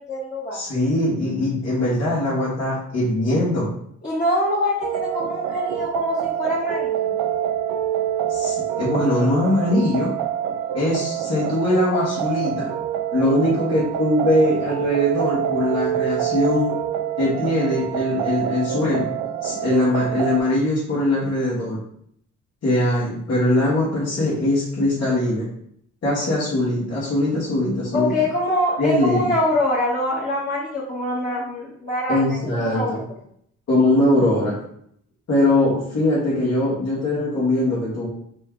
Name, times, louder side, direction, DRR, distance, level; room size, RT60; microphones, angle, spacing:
voice 1, 0.0-0.6 4.0-7.2 27.9-32.2 32.5-32.9, left 1 dB, 25° left, -8 dB, 1.2 m, -24 dB
voice 2, 0.5-3.7 8.3-10.1 10.7-12.7 13.1-16.7 17.2-19.0 19.4-21.8 22.6-25.5 26.0-28.1 28.8-29.3 32.1-33.0 33.7-34.5 35.3-38.1, left 1 dB, 55° left, -9 dB, 1.5 m, -21 dB
sound 1, 4.8-20.4, right 10 dB, 80° right, 0.6 m, -26 dB
4.2 x 2.3 x 3.7 m, 0.69 s
cardioid pair, 90°, 30 cm